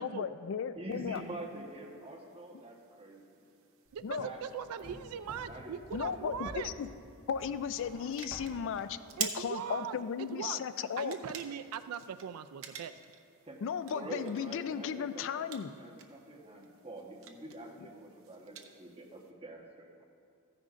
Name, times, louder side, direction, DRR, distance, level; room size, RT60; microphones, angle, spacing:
voice 1, 0.0-1.2 4.0-4.3 5.9-6.9 7.3-11.2 13.6-15.7, left 7 dB, 60° left, 12 dB, 0.3 m, -35 dB
voice 2, 0.7-3.4 4.2-4.4 4.8-5.7 6.0-6.5 13.4-13.6 13.9-15.5 15.8-20.0, right 1 dB, 25° right, -1 dB, 1.2 m, -46 dB
sound 1, 0.9-19.3, right 8 dB, 65° right, 0.7 m, -49 dB
sound 2, 3.9-9.1, equal, 40° left, 1.5 m, -51 dB
voice 3, 3.9-6.7 9.2-10.6 11.0-12.9, right 8 dB, 80° right, 12 dB, 0.3 m, -40 dB
14.0 x 10.0 x 2.5 m, 2.5 s
head